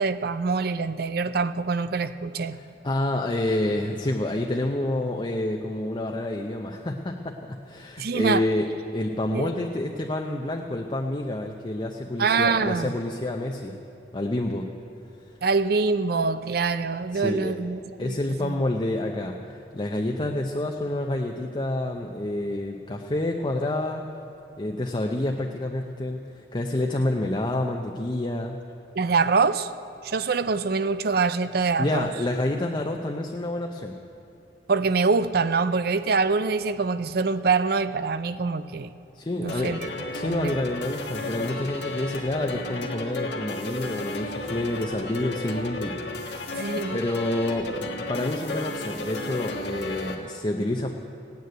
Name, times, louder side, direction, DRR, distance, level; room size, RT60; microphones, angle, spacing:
voice 1, 0.0-2.6 8.0-8.4 9.3-9.5 12.2-13.0 15.4-18.6 29.0-29.7 30.0-32.1 34.7-38.9 39.4-39.8 40.2-40.6 46.5-47.0, right 4 dB, 60° right, 13 dB, 0.5 m, -25 dB
voice 2, 2.5-13.8 14.1-14.7 17.1-17.5 18.0-24.1 24.6-28.6 31.8-34.0 39.1-39.8 40.1-46.0 46.5-50.9, left 1 dB, 25° left, 2 dB, 0.7 m, -28 dB
sound 1, 39.5-50.2, left 2 dB, 70° left, 1.5 m, -33 dB
16.5 x 9.5 x 9.1 m, 2.7 s
head